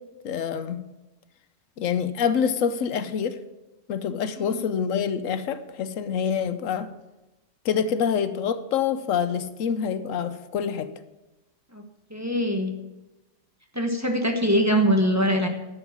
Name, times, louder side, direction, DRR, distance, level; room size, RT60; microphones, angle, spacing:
voice 1, 0.2-0.8 1.8-3.4 3.9-6.9 7.6-10.9, left 7 dB, 90° left, 1.2 m, -26 dB
voice 2, 12.1-12.7 13.7-15.5, equal, 15° right, 1.3 m, -23 dB
12.0 x 7.3 x 7.2 m
omnidirectional pair, 1.3 m